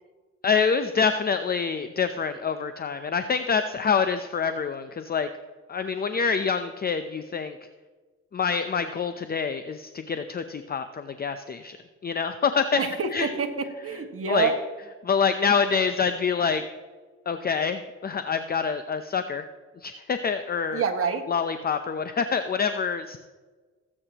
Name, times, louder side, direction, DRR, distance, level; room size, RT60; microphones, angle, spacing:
voice 1, 0.4-5.3 5.7-7.6 8.3-11.8 12.0-12.8 13.1-13.3 14.3-14.5 15.0-16.6 17.3-19.4 19.8-20.8 21.3-23.2, left 6 dB, 30° left, 9 dB, 0.6 m, -26 dB
voice 2, 12.8-14.6 20.7-21.2, right 5 dB, 50° right, 3 dB, 1.9 m, -27 dB
18.0 x 8.6 x 3.0 m, 1.3 s
cardioid pair, 90°, 30 cm